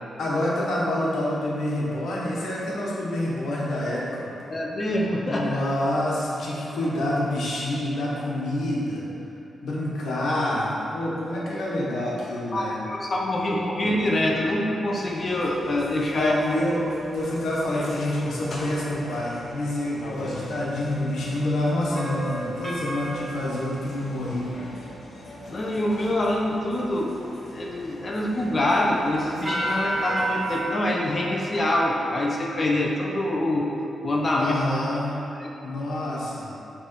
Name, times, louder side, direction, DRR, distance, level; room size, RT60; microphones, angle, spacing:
voice 1, 0.2-4.5 5.2-9.1 9.6-12.8 16.2-16.8 17.1-24.5 34.4-35.2 35.6-36.5, left 1 dB, 80° left, -5 dB, 1.2 m, -27 dB
voice 2, 4.5-5.7 12.5-16.3 25.5-27.2 27.5-33.7 34.0-34.5 35.4-35.6, left 1 dB, 35° left, -1 dB, 0.6 m, -25 dB
sound 1, 15.0-30.6, left 1 dB, 55° left, 1.0 m, -42 dB
sound 2, 21.9-24.9 29.5-30.7, right 2 dB, 15° right, 0.7 m, -31 dB
6.2 x 3.3 x 4.5 m, 2.8 s
cardioid pair, 105°, 0 cm